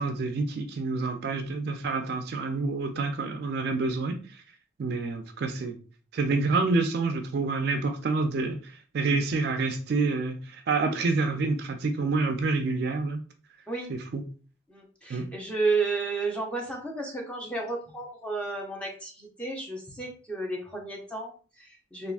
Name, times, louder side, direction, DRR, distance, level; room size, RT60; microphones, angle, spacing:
voice 1, 0.0-4.2 4.8-5.8 6.1-13.2 13.9-14.2 15.1-15.3, right 3 dB, 50° right, 0.3 m, -28 dB
voice 2, 14.7-22.1, right 3 dB, 5° left, 0.5 m, -32 dB
3.4 x 2.4 x 2.3 m
head